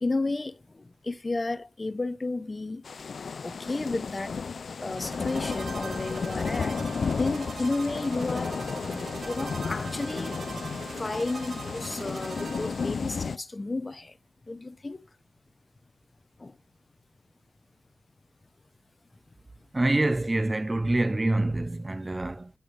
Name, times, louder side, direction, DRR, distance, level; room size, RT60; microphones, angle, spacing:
voice 1, 0.0-2.8 3.4-4.4 4.8-8.6 8.9-10.7 11.0-14.1 14.5-15.0 16.4-16.5, left 2 dB, 25° left, 0.8 m, -32 dB
sound 1, 2.8-13.4, left 5 dB, 55° left, 0.4 m, -33 dB
sound 2, 4.8-13.3, right 5 dB, 55° right, 1.2 m, -42 dB
voice 2, 19.7-22.5, right 2 dB, 20° right, 0.4 m, -26 dB
11.0 x 7.7 x 3.3 m
wide cardioid pair, 90°, 0 cm